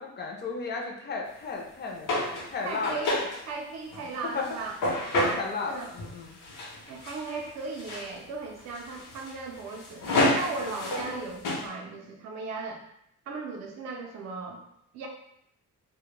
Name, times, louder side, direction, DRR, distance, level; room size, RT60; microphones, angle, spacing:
voice 1, 0.0-3.1 4.3-4.4 5.4-6.4, left 4 dB, 35° left, 0 dB, 0.4 m, -34 dB
sound 1, 2.1-3.5 3.9-5.4 5.8-6.2 6.4-7.5 7.8-8.1 8.6-11.2 11.4-11.7, left 1 dB, 75° left, 0.7 m, -29 dB
voice 2, 2.6-3.2 3.5-4.8 5.2-5.9 6.9-12.8 13.3-14.6 14.9-15.1, right 4 dB, 55° right, 1 dB, 0.4 m, -37 dB
2.1 x 2.0 x 3.0 m, 0.74 s
cardioid pair, 140°, 32 cm